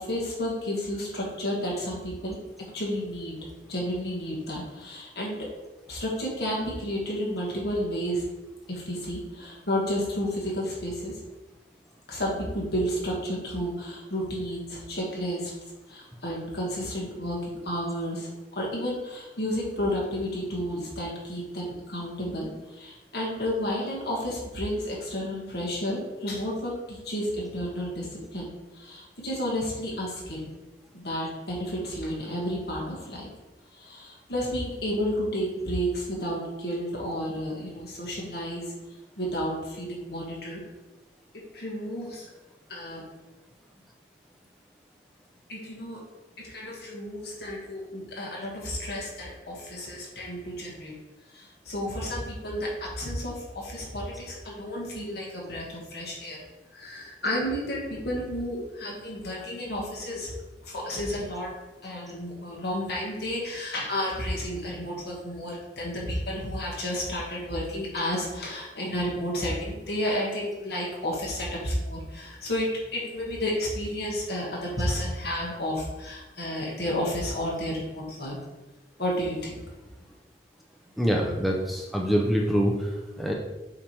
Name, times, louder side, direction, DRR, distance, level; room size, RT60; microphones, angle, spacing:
voice 1, 0.0-2.4 2.7-3.4 3.7-5.5 5.9-8.3 8.7-11.2 12.1-15.5 15.9-18.3 18.6-28.5 28.7-30.5 30.9-33.3 33.7-38.7 39.2-40.6 41.3-42.3 42.7-43.1 45.5-46.0 46.4-50.9 51.3-56.4 56.7-60.3 60.7-61.5 61.8-78.4 79.0-79.6, equal, 65° left, -3 dB, 1.9 m, -31 dB
voice 2, 81.0-82.7 83.2-83.3, equal, ahead, -1 dB, 0.5 m, -24 dB
7.2 x 3.3 x 4.5 m, 1.1 s
head